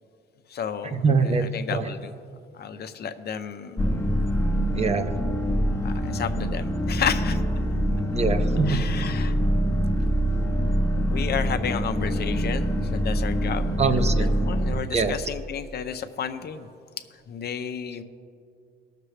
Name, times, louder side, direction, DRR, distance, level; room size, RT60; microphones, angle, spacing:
voice 1, 0.5-2.1 2.5-3.8 5.8-7.4 8.7-9.4 9.7-9.8 11.1-13.7 14.2-16.7 17.3-18.0, left 7 dB, 55° left, 9 dB, 0.6 m, -32 dB
voice 2, 1.0-1.9 4.8-5.1 8.1-8.8 13.8-14.3 14.9-15.2, right 4 dB, 35° right, 9 dB, 0.6 m, -23 dB
sound 1, 3.8-14.8, equal, 15° left, 0.7 m, -24 dB
19.5 x 6.7 x 3.3 m, 2.5 s
cardioid pair, 90°, 20 cm